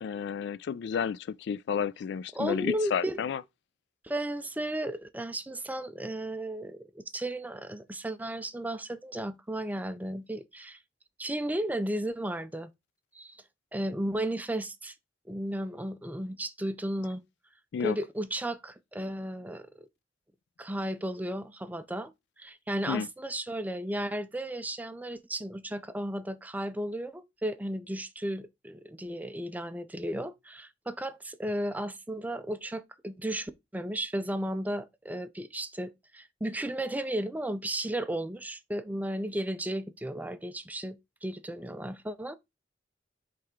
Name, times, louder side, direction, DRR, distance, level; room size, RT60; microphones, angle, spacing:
voice 1, 0.0-3.4 17.7-18.0 22.9-23.1, left 7 dB, 65° left, 0.3 m, -31 dB
voice 2, 2.3-3.2 4.0-10.8 11.2-12.7 13.1-13.4 13.7-14.9 15.3-17.2 17.8-19.7 20.6-22.1 22.4-42.4, right 1 dB, 10° right, 0.4 m, -34 dB
7.8 x 3.4 x 3.6 m
head